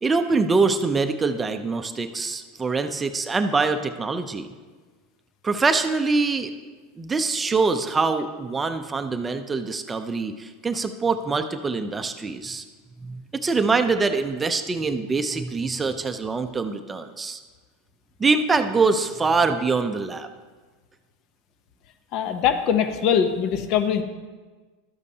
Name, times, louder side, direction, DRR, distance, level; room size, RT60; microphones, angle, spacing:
voice 1, 0.0-4.5 5.4-6.5 7.0-12.6 13.0-17.4 18.2-20.3, right 4 dB, 15° right, 7 dB, 0.5 m, -24 dB
voice 2, 22.1-24.0, left 8 dB, 55° left, 9 dB, 0.7 m, -22 dB
12.5 x 8.2 x 2.8 m, 1.4 s
supercardioid pair, 115°, 0 cm